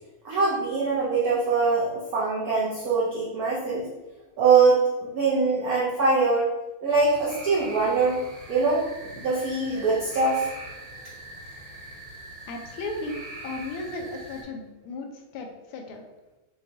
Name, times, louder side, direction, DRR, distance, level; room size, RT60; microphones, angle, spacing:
voice 1, 0.2-3.9 4.4-6.5 6.8-8.2 8.5-10.5, right 4 dB, 80° right, -6 dB, 0.8 m, -23 dB
sound 1, 6.9-14.4, right 2 dB, 30° right, 0.7 m, -42 dB
voice 2, 12.5-16.0, left 2 dB, 85° left, 2 dB, 1.5 m, -35 dB
5.9 x 2.3 x 2.6 m, 1.1 s
omnidirectional pair, 2.4 m